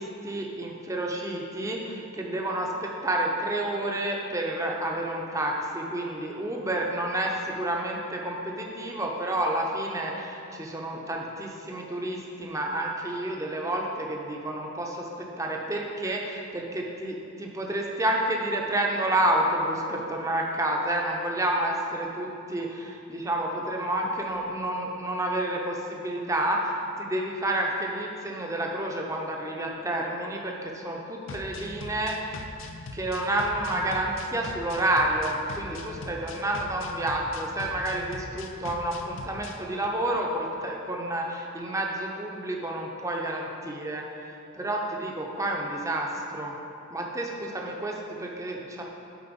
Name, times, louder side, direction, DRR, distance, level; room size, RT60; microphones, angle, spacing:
voice 1, 0.0-32.4 32.9-46.5 46.9-48.8, right 1 dB, 15° right, 0 dB, 0.7 m, -30 dB
sound 1, 31.3-39.6, left 3 dB, 60° left, 0.5 m, -41 dB
9.2 x 4.5 x 5.2 m, 2.7 s
head